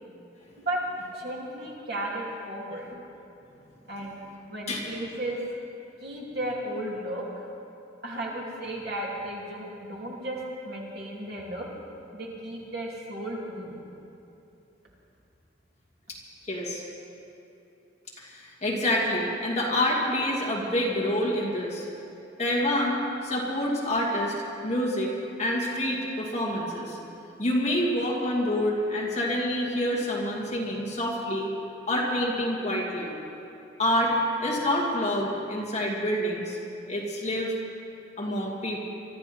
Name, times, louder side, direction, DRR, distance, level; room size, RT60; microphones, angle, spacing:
voice 1, 0.6-2.9 3.9-4.2 4.5-5.4 6.0-7.5 8.0-11.7 12.1-13.8, right 1 dB, 55° right, -4 dB, 3.0 m, -34 dB
voice 2, 16.4-16.8 18.2-21.9 22.4-24.3 24.6-25.1 25.4-27.0 27.4-31.5 31.9-33.1 33.8-34.1 34.4-36.6 36.9-37.5 38.2-38.8, left 1 dB, 35° left, -3 dB, 2.4 m, -27 dB
24.0 x 13.5 x 4.4 m, 2.8 s
head